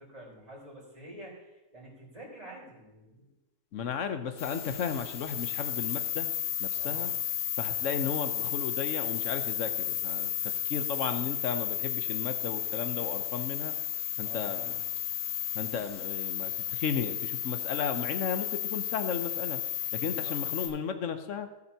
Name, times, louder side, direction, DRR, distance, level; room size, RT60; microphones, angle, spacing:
voice 1, 0.1-3.3 6.8-7.1 14.2-14.9 20.0-20.4, right 1 dB, 25° right, -5 dB, 4.3 m, -48 dB
voice 2, 3.7-6.3 6.6-7.1 7.6-13.7 14.2-14.8 15.5-19.6 19.9-21.5, left 6 dB, 60° left, 8 dB, 1.1 m, -34 dB
sound 1, 4.4-20.7, left 10 dB, 90° left, 1.6 m, -33 dB
18.0 x 6.8 x 2.9 m, 0.98 s
omnidirectional pair, 1.5 m